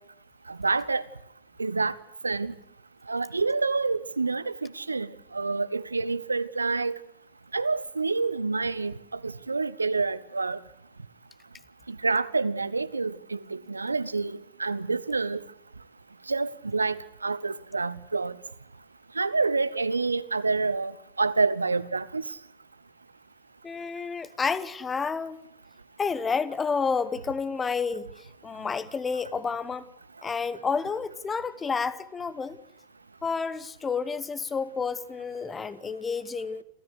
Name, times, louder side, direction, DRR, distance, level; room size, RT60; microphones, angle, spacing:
voice 1, 0.5-1.0 1.6-1.9 2.2-2.5 3.1-7.0 7.5-10.6 11.9-15.4 16.3-18.4 19.2-20.9 21.2-22.2, right 3 dB, 80° right, 0.8 m, -28 dB
voice 2, 23.6-25.4 26.0-29.9 30.2-32.6 33.2-36.6, left 5 dB, 15° left, 1.1 m, -30 dB
29.5 x 13.5 x 8.2 m
figure-of-eight pair, 90°, 0 cm